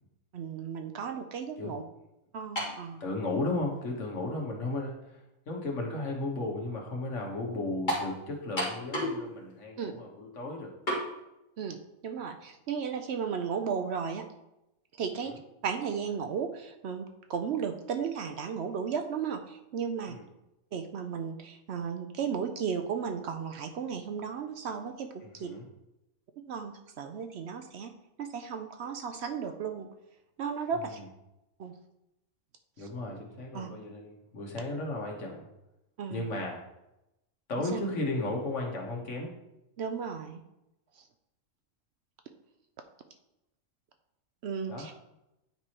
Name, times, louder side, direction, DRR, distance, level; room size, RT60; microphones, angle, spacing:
voice 1, 0.3-1.8 2.3-3.1 9.8-9.9 11.6-14.2 15.0-15.3 15.6-20.2 20.7-25.5 26.4-27.9 28.2-29.9 30.4-31.0 31.6-31.7 32.8-32.9 33.5-33.7 36.0-36.3 37.7-37.8 39.8-40.4 40.9-41.1 44.4-45.0, right 6 dB, 65° right, 6 dB, 0.8 m, -35 dB
sound 1, 2.6-2.8 3.7-3.8 7.9-8.1 8.6-9.2 9.5-9.6 10.9-11.1, equal, 35° left, 2.0 m, -30 dB
voice 2, 3.0-10.8 15.2-15.3 20.1-20.2 25.4-25.6 30.8-30.9 32.8-35.5 36.1-36.6 37.5-39.3 44.7-45.0, left 2 dB, 70° left, 0 dB, 1.6 m, -35 dB
9.5 x 4.7 x 2.9 m, 0.90 s
omnidirectional pair, 1.3 m